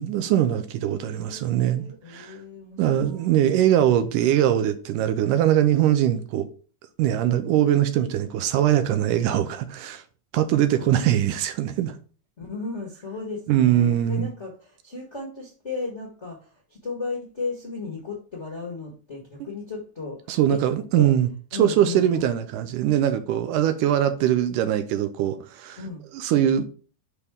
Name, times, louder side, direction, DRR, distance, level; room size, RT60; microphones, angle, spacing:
voice 1, 0.0-2.4 2.8-6.5 7.0-10.0 10.3-12.0 13.5-14.3 20.3-21.3 21.6-25.8 26.1-26.7, right 11 dB, 80° right, 2.1 m, -22 dB
voice 2, 0.8-3.4 10.8-11.0 12.4-20.6 20.9-21.1 21.5-22.3 25.8-26.0, left 3 dB, 45° left, 0.9 m, -35 dB
6.2 x 5.6 x 3.6 m
omnidirectional pair, 3.9 m